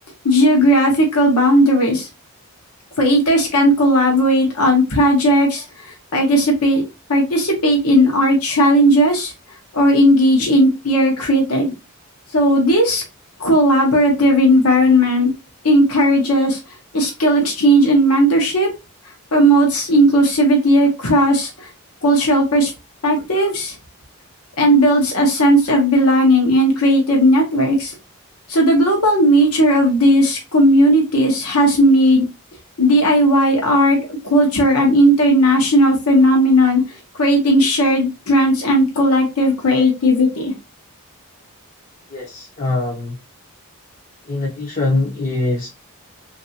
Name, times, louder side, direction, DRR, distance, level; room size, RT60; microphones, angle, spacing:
voice 1, 0.2-2.1 3.0-9.3 9.7-11.7 12.3-13.0 13.4-15.3 15.6-16.6 16.9-18.7 19.3-21.7 22.0-22.7 23.0-23.7 24.6-27.9 28.5-32.2 32.8-40.5, equal, 75° left, 1 dB, 0.8 m, -15 dB
voice 2, 42.1-43.2 44.3-45.7, left 2 dB, 40° left, -3 dB, 0.7 m, -22 dB
3.2 x 2.6 x 2.7 m, 0.27 s
head